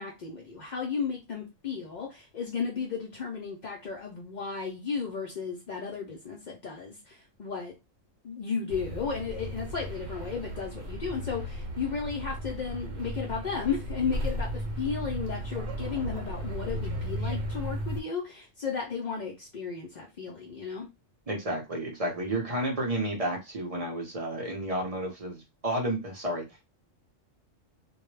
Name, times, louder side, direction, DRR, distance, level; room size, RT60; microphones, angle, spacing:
voice 1, 0.0-7.7 8.2-20.9, left 5 dB, 60° left, 0.4 m, -34 dB
sound 1, 8.7-18.0, equal, 65° right, 0.9 m, -35 dB
voice 2, 21.3-26.4, right 1 dB, 35° right, 0.6 m, -31 dB
2.2 x 2.1 x 3.1 m
omnidirectional pair, 1.4 m